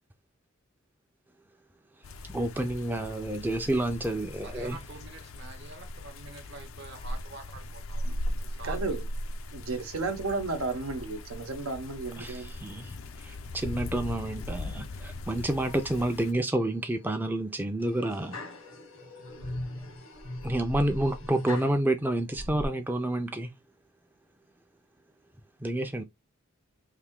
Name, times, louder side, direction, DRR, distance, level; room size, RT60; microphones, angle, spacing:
sound 1, 2.0-16.3, left 1 dB, 75° left, 0.5 m, -39 dB
voice 1, 2.3-4.8 12.2-18.4 20.4-23.5 25.6-26.0, right 1 dB, 10° right, 0.4 m, -29 dB
voice 2, 4.4-8.2 8.6-8.9, right 3 dB, 55° right, 0.9 m, -46 dB
voice 3, 8.6-9.0 9.5-12.5, right 3 dB, 85° right, 0.8 m, -33 dB
sound 2, 15.6-16.3 16.8-17.2 17.8-21.8 22.3-22.7, left 1 dB, 90° left, 1.6 m, -40 dB
3.3 x 2.6 x 3.6 m
head